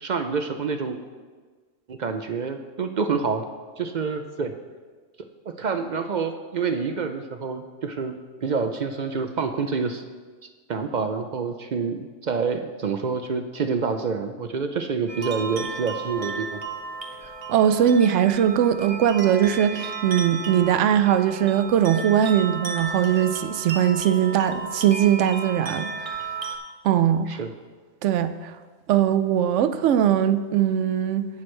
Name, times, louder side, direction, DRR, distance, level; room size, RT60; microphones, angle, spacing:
voice 1, 0.0-1.0 1.9-3.4 3.8-4.5 5.5-8.1 8.4-10.0 10.7-16.6 27.3-27.5, right 5 dB, 55° right, 7 dB, 0.5 m, -27 dB
sound 1, 15.1-26.6, right 4 dB, 30° right, 0.9 m, -34 dB
voice 2, 17.5-26.2 26.8-27.3 28.0-28.5 28.9-31.3, right 9 dB, 75° right, 12 dB, 0.9 m, -20 dB
18.0 x 6.1 x 3.2 m, 1.4 s
omnidirectional pair, 1.3 m